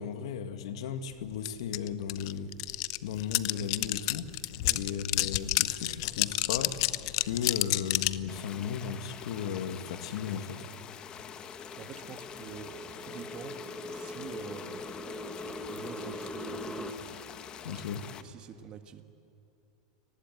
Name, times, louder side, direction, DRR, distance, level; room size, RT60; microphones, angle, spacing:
voice 1, 0.0-2.5 3.0-4.3 4.7-6.8 7.2-10.7 17.6-18.1, left 7 dB, 80° left, 9 dB, 1.9 m, -35 dB
sound 1, 1.4-1.5 1.7-8.2, left 19 dB, 60° left, 0.7 m, -29 dB
sound 2, 8.3-18.2, left 8 dB, 30° left, 1.1 m, -46 dB
sound 3, 10.6-16.9, left 1 dB, 10° left, 1.2 m, -42 dB
voice 2, 11.8-13.6 13.9-14.8 15.7-17.2 17.6-17.8 18.2-19.0, right 8 dB, 30° right, 8 dB, 1.6 m, -46 dB
30.0 x 19.5 x 9.3 m, 2.8 s
supercardioid pair, 145°, 3 cm